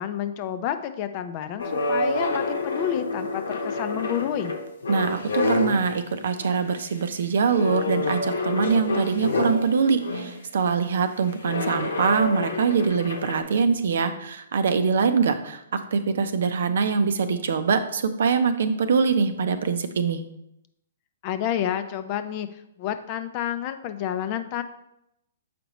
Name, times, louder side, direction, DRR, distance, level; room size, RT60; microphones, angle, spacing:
voice 1, 0.0-4.6 21.2-22.5 22.8-24.6, left 10 dB, 40° left, 10 dB, 0.5 m, -29 dB
sound 1, 1.6-6.0 6.4-6.8 7.5-10.4 11.4-13.4, left 2 dB, 80° left, 1.1 m, -28 dB
voice 2, 4.9-20.2, right 5 dB, 65° right, 10 dB, 0.6 m, -23 dB
6.8 x 5.0 x 3.0 m, 0.81 s
hypercardioid pair, 130°, 0 cm